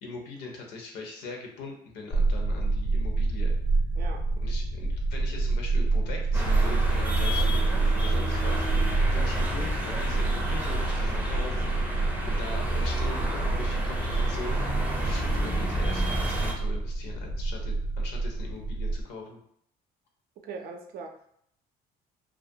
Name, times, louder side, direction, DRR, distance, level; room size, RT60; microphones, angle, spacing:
voice 1, 0.0-3.5 4.4-19.4, left 3 dB, 90° left, 1 dB, 0.7 m, -41 dB
sound 1, 2.1-19.0, right 3 dB, 45° left, 0.4 m, -27 dB
voice 2, 4.0-4.3 20.4-21.3, right 4 dB, 65° right, 4 dB, 0.5 m, -40 dB
sound 2, 6.3-16.5, equal, 10° right, 0.5 m, -31 dB
2.3 x 2.1 x 2.7 m, 0.69 s
cardioid pair, 110°, 17 cm